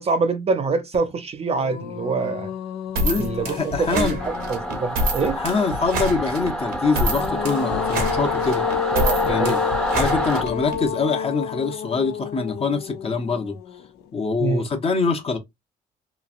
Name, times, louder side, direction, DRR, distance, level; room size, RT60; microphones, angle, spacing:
voice 1, 0.0-2.5 3.2-5.4 8.9-9.6 14.4-14.6, right 4 dB, 35° right, 0.5 m, -25 dB
sound 1, 0.9-1.0 1.4-5.1 6.8-14.0, left 9 dB, 70° left, 0.5 m, -30 dB
sound 2, 2.9-10.8, right 1 dB, 60° right, 1.0 m, -27 dB
voice 2, 3.0-4.2 5.4-8.6 9.2-13.6 14.1-15.4, left 4 dB, 35° left, 0.8 m, -24 dB
Singing / Musical instrument, 4.2-10.4, equal, 5° left, 0.7 m, -28 dB
3.1 x 2.3 x 2.4 m
supercardioid pair, 80°, 18 cm